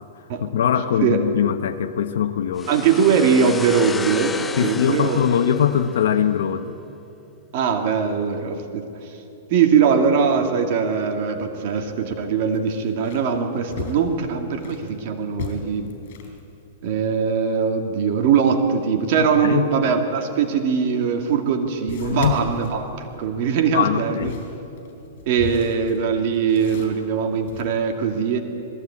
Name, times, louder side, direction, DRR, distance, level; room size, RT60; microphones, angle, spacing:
voice 1, 0.4-2.7 4.6-6.8 19.2-19.7 22.0-22.4 23.7-24.4, left 9 dB, 70° left, 7 dB, 0.9 m, -22 dB
sound 1, 2.6-6.3, left 5 dB, 10° left, 0.4 m, -33 dB
voice 2, 2.7-4.4 4.6-5.2 7.5-9.2 9.5-15.9 16.8-24.3 25.3-28.4, right 6 dB, 45° right, 4 dB, 2.0 m, -21 dB
sound 2, 11.4-11.5 11.9-12.0 12.5-14.9 15.3-16.4 20.7-20.8 21.9-23.4 23.9-27.6, left 6 dB, 55° left, 4.2 m, -35 dB
20.5 x 15.0 x 8.5 m, 2.8 s
hypercardioid pair, 155°, 0 cm